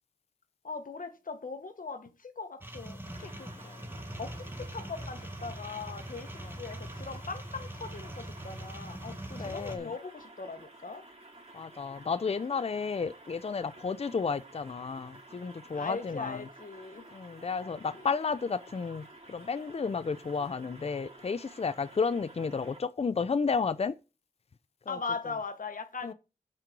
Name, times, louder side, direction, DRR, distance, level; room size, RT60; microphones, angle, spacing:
voice 1, 0.6-3.5 4.2-11.1 15.7-17.1 17.6-18.1 24.9-26.1, left 4 dB, 75° left, 1.2 m, -40 dB
sound 1, 2.6-9.8, right 1 dB, 15° right, 1.7 m, -42 dB
sound 2, 3.0-22.8, right 1 dB, 45° right, 2.8 m, -52 dB
voice 2, 9.3-9.9 11.5-16.4 17.1-23.9 24.9-25.0 26.0-26.1, left 5 dB, 45° left, 0.5 m, -32 dB
7.6 x 5.1 x 6.0 m
wide cardioid pair, 80°, 14 cm